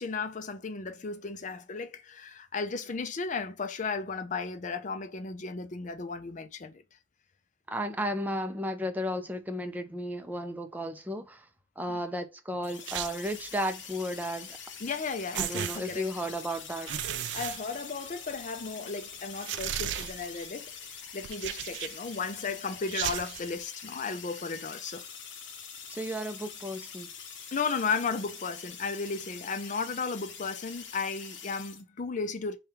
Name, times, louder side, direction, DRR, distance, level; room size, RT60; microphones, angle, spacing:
voice 1, 0.0-6.8 11.9-12.0 14.8-16.1 17.3-20.7 21.1-25.0 27.5-32.6, left 4 dB, 45° left, 0.5 m, -34 dB
voice 2, 7.7-11.5 11.8-14.6 15.3-17.0 25.9-27.1, equal, 10° right, 0.5 m, -34 dB
sound 1, 12.6-31.8, left 7 dB, 80° left, 0.7 m, -45 dB
sound 2, 12.9-13.5 14.8-14.9 15.3-16.4 16.8-18.3 18.7-18.8 19.3-20.5 21.2-22.2 22.8-23.5, right 11 dB, 65° right, 0.3 m, -35 dB
3.4 x 2.3 x 4.2 m
head